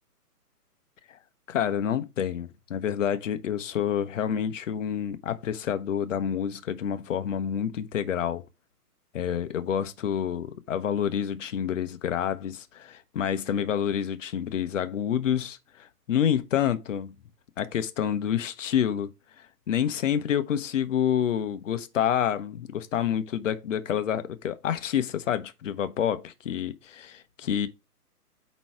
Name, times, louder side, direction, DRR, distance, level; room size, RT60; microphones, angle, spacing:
voice 1, 1.5-8.4 9.1-17.1 17.6-19.1 19.7-27.7, left 9 dB, 50° left, 0.9 m, -28 dB
8.6 x 3.1 x 4.6 m
hypercardioid pair, 145°, 47 cm